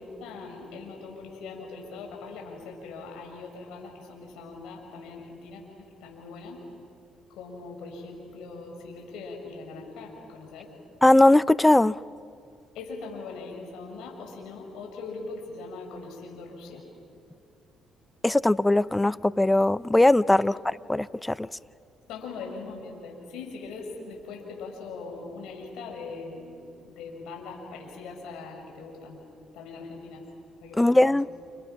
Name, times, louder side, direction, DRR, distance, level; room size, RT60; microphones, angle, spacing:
voice 1, 0.0-6.6 7.3-10.7 12.7-16.8 20.4-20.6 22.1-29.2 29.5-30.2 30.6-31.2, left 4 dB, 80° left, 6.4 m, -41 dB
voice 2, 11.0-11.9 18.2-21.5 30.8-31.3, left 1 dB, 10° left, 0.6 m, -20 dB
29.5 x 29.5 x 5.9 m
supercardioid pair, 70°, 0 cm